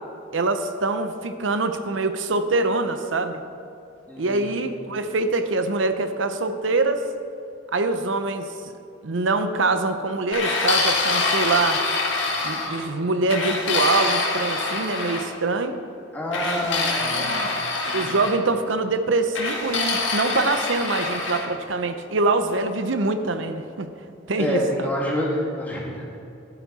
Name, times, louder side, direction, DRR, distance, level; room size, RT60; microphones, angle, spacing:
voice 1, 0.3-3.4 4.2-7.1 7.7-8.5 9.0-11.8 12.4-15.8 17.1-17.6 17.9-23.9 24.3-24.9, right 3 dB, 90° right, 9 dB, 0.7 m, -24 dB
voice 2, 4.1-4.6 16.1-17.3 17.9-18.1 24.4-26.1, equal, 10° left, -4 dB, 2.6 m, -27 dB
sound 1, 10.3-12.8 13.3-15.2 16.3-18.4 19.3-21.5, left 3 dB, 85° left, 1.8 m, -25 dB
14.5 x 11.0 x 4.2 m, 2.7 s
head